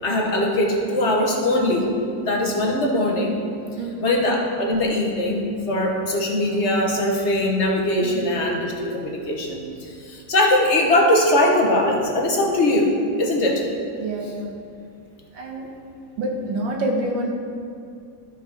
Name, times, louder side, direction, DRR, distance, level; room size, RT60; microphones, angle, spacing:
voice 1, 0.0-1.9 2.2-3.4 4.0-13.6, left 1 dB, 40° left, 0 dB, 1.3 m, -21 dB
voice 2, 3.8-4.1 8.0-8.2 14.0-14.5 15.3-15.7 16.2-17.3, right 1 dB, 85° right, 0 dB, 2.0 m, -27 dB
12.0 x 5.0 x 5.7 m, 2.4 s
omnidirectional pair, 2.0 m